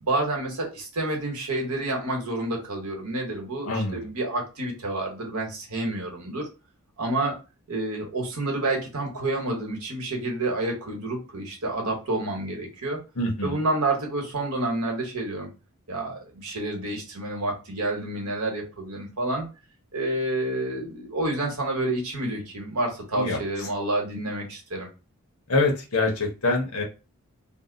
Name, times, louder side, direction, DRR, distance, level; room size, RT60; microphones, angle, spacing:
voice 1, 0.0-6.5 7.0-7.3 7.7-13.0 13.4-15.5 15.9-19.5 19.9-24.9, right 2 dB, 80° right, 1 dB, 1.1 m, -29 dB
voice 2, 3.6-4.0 13.2-13.6 23.1-23.7 25.5-26.8, left 2 dB, 70° left, 2 dB, 0.9 m, -25 dB
2.7 x 2.1 x 3.8 m, 0.30 s
head